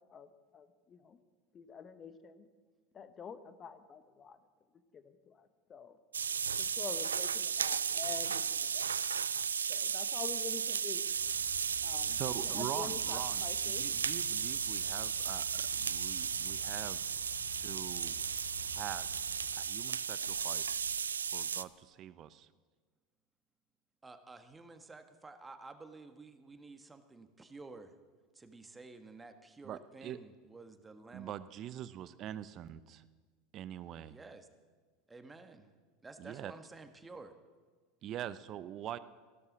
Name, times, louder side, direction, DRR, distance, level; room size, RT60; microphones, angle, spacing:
voice 1, 0.5-1.2 1.5-2.5 2.9-4.4 4.9-5.4 5.7-6.0 6.6-8.9 9.7-11.0 11.8-12.2 12.5-13.8, left 7 dB, 30° left, 11 dB, 1.2 m, -47 dB
sound 1, 6.1-21.6, right 7 dB, 85° right, 0.3 m, -35 dB
sound 2, 11.1-19.5, left 2 dB, 90° left, 2.9 m, -52 dB
voice 2, 12.2-17.0 17.6-18.2 18.7-19.1 19.6-20.8 21.3-22.5 29.6-30.2 31.1-33.0 33.5-34.2 36.2-36.5 38.0-39.0, right 11 dB, 45° right, 15 dB, 0.7 m, -44 dB
voice 3, 24.0-27.9 28.3-31.3 34.1-34.5 35.1-35.7 36.0-37.4, right 3 dB, 15° right, 8 dB, 1.5 m, -52 dB
15.5 x 12.5 x 6.2 m, 1.4 s
hypercardioid pair, 85°, 0 cm